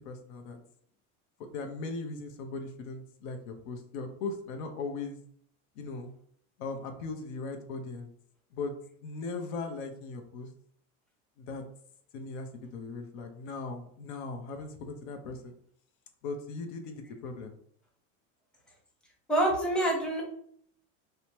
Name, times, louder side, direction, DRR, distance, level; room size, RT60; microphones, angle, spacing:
voice 1, 0.0-0.6 1.5-5.2 5.8-6.1 6.6-8.1 8.5-8.7 9.0-10.5 11.4-11.6 12.1-15.5 16.2-17.6, left 3 dB, 75° left, 5 dB, 0.7 m, -38 dB
voice 2, 19.3-20.2, right 1 dB, ahead, -2 dB, 0.7 m, -26 dB
2.7 x 2.2 x 3.0 m, 0.64 s
supercardioid pair, 120°, 38 cm